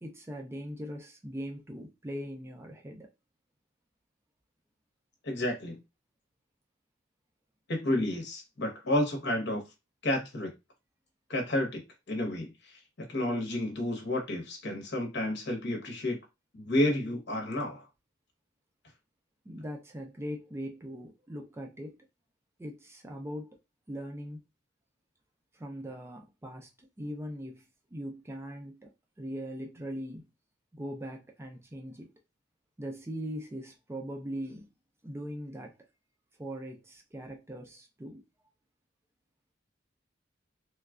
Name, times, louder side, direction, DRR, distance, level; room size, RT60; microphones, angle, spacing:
voice 1, 0.0-3.1 19.5-22.0 22.6-23.6 23.9-24.4 25.5-28.9 29.2-30.3 30.7-32.1 32.8-34.7 35.0-35.8 36.4-38.2, equal, 15° right, 0.3 m, -40 dB
voice 2, 5.2-5.8 7.7-9.6 10.0-10.5 11.3-11.8 12.1-12.7 13.0-16.2 16.5-17.8, left 1 dB, 60° left, 0.9 m, -30 dB
3.1 x 2.3 x 2.3 m
head